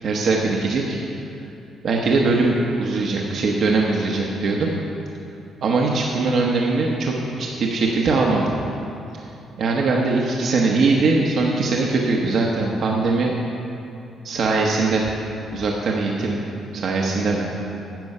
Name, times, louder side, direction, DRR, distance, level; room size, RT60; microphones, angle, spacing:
voice 1, 0.0-1.0 1.8-4.7 5.6-8.5 9.6-13.3 14.2-15.1 15.5-16.4 16.7-17.5, right 3 dB, 60° right, -1 dB, 1.0 m, -21 dB
10.5 x 7.1 x 5.4 m, 2.8 s
cardioid pair, 90°, 0 cm